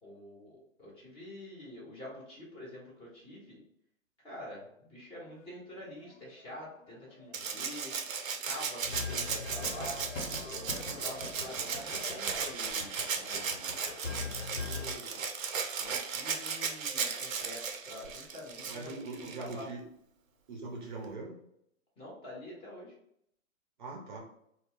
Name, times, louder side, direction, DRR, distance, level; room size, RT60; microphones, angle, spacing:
voice 1, 0.0-3.6 4.2-7.9 8.4-10.0 10.5-15.2 15.8-19.7 22.0-23.0, left 1 dB, 15° left, -5 dB, 0.7 m, -47 dB
sound 1, 5.2-12.2, left 3 dB, 55° left, 0.8 m, -53 dB
Rattle (instrument), 7.3-19.6 21.0-21.1, right 6 dB, 85° right, 0.6 m, -36 dB
sound 2, 8.8-14.9, left 3 dB, 80° left, 1.0 m, -41 dB
voice 2, 18.7-19.8 20.5-21.3 23.8-24.2, right 3 dB, 40° right, 0 dB, 0.5 m, -41 dB
2.2 x 2.0 x 3.6 m, 0.74 s
hypercardioid pair, 130°, 40 cm